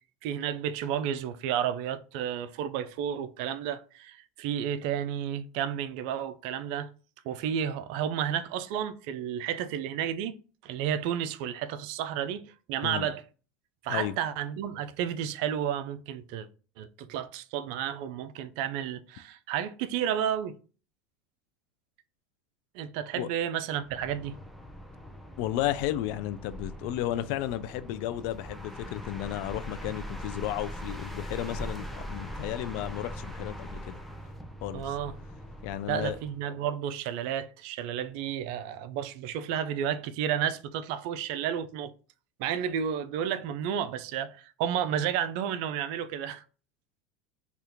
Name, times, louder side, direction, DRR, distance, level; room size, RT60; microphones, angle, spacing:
voice 1, 0.2-6.9 7.3-10.4 10.6-13.2 13.8-16.5 16.8-20.6 22.7-24.4 34.7-35.1 35.9-41.9 42.4-46.4, right 9 dB, 65° right, 0.3 m, -32 dB
sound 1, 23.7-36.4, equal, ahead, 0.5 m, -41 dB
voice 2, 25.4-34.0 34.6-34.8 35.6-36.2, left 13 dB, 65° left, 0.3 m, -33 dB
2.8 x 2.4 x 3.5 m
hypercardioid pair, 95°, 5 cm